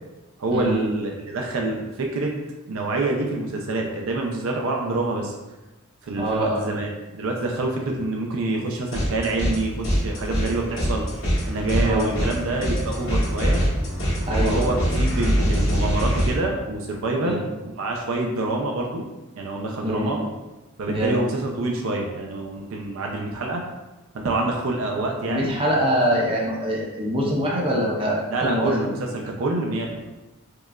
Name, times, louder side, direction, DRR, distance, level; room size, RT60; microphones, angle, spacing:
voice 1, 0.4-2.3 2.7-5.4 6.0-11.1 11.4-13.6 14.4-19.1 19.4-20.3 20.8-23.6 24.1-25.5 28.3-30.1, right 2 dB, 70° right, 1 dB, 0.4 m, -26 dB
voice 2, 6.2-6.6 11.8-12.1 14.3-14.8 17.2-17.4 19.8-20.1 20.9-21.2 25.3-28.7, equal, 25° right, -3 dB, 0.6 m, -24 dB
sound 1, 8.9-9.6 9.8-16.3, equal, 70° left, 1.5 m, -23 dB
4.8 x 2.3 x 2.3 m, 1.1 s
head